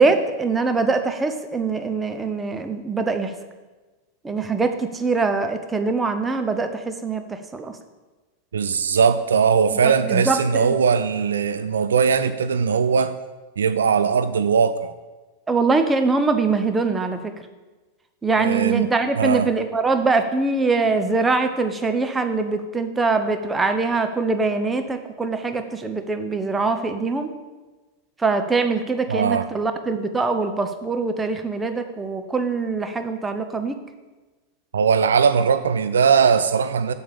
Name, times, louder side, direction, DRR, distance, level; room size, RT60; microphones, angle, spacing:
voice 1, 0.0-3.3 4.2-7.7 9.7-10.8 15.5-17.3 18.2-27.3 28.2-33.7, right 3 dB, 15° right, 7 dB, 1.0 m, -23 dB
voice 2, 8.5-13.1 13.6-14.9 18.4-18.9 19.1-19.5 29.1-29.5 34.7-36.9, right 6 dB, 65° right, 11 dB, 0.4 m, -19 dB
7.8 x 7.4 x 7.0 m, 1.2 s
figure-of-eight pair, 90°, 0 cm